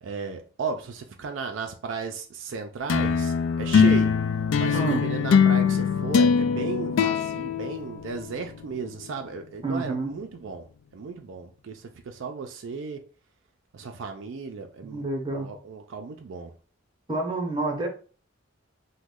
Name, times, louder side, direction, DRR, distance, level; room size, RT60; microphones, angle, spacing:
voice 1, 0.0-4.1 4.6-10.7 10.9-13.0 13.7-15.0 15.3-16.5, right 4 dB, 70° right, 0.4 m, -35 dB
sound 1, 2.9-8.5, left 6 dB, 75° left, 0.3 m, -22 dB
voice 2, 4.7-5.0 9.6-10.1 14.8-15.5 17.1-17.9, right 2 dB, 25° right, 0.7 m, -28 dB
3.0 x 2.2 x 3.5 m
head